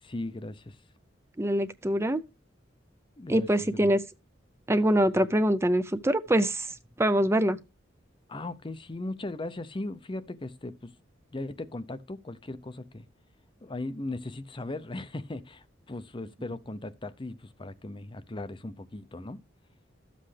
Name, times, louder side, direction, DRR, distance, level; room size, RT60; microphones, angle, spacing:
voice 1, 0.0-0.8 3.2-3.9 8.3-10.9 11.3-13.1 13.6-19.4, left 2 dB, 25° left, 0.6 m, -38 dB
voice 2, 1.4-2.2 3.3-4.0 4.7-6.7 7.0-7.6, right 1 dB, 15° right, 0.5 m, -24 dB
13.0 x 7.7 x 3.3 m
head